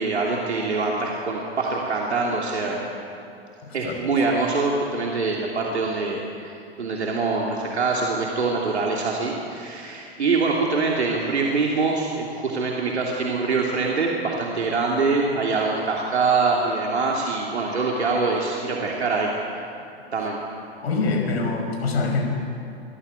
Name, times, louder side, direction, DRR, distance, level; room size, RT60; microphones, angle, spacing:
voice 1, 0.0-2.8 3.7-19.3 20.1-20.4, right 4 dB, 90° right, -2 dB, 3.1 m, -24 dB
voice 2, 3.6-4.0 20.8-22.3, left 3 dB, 70° left, 3 dB, 5.5 m, -25 dB
23.5 x 17.5 x 8.4 m, 2.6 s
hypercardioid pair, 110°, 32 cm